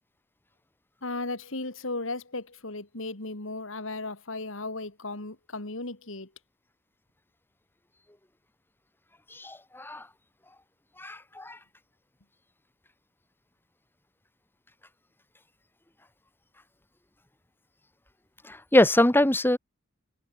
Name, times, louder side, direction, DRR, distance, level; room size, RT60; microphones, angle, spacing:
voice 1, 1.0-6.3, left 2 dB, 65° left, 2.6 m, -35 dB
voice 2, 9.3-10.0 11.0-11.6 18.5-19.6, left 1 dB, 10° left, 1.3 m, -23 dB
head